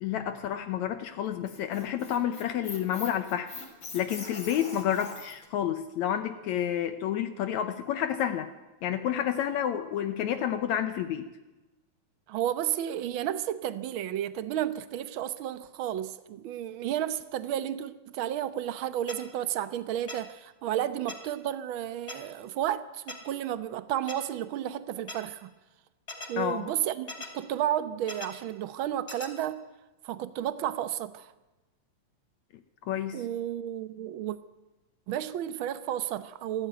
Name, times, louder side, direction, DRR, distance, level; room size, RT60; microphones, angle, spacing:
voice 1, 0.0-3.5 3.9-8.5 8.8-11.3 26.4-26.7 32.9-33.3, left 10 dB, 75° left, 2.1 m, -30 dB
Squeak, 1.2-5.5, left 3 dB, 40° left, 4.3 m, -43 dB
voice 2, 12.3-25.5 26.3-29.6 30.0-31.3 33.1-34.4 35.1-36.7, right 11 dB, 70° right, 1.2 m, -32 dB
sound 1, 19.1-19.2 20.1-20.2 21.1-21.2 22.1-22.2 23.1-23.2 24.1-24.2 25.1-25.2 26.1-26.3 27.1-27.3 28.1-28.3 29.1-29.3, left 2 dB, 20° left, 3.2 m, -38 dB
25.5 x 14.5 x 9.2 m
omnidirectional pair, 3.5 m